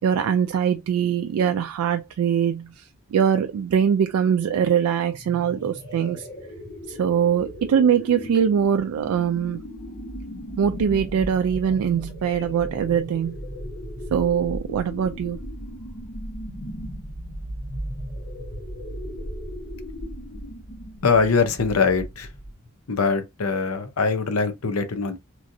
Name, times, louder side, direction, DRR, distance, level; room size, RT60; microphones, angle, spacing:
voice 1, 0.0-6.3 6.9-9.6 10.6-13.4 14.1-15.4, right 8 dB, 90° right, 0.3 m, -22 dB
sound 1, 5.1-22.7, equal, 55° left, 1.1 m, -36 dB
voice 2, 21.0-22.3 22.9-25.2, left 4 dB, 85° left, 0.7 m, -22 dB
3.0 x 2.6 x 2.5 m
head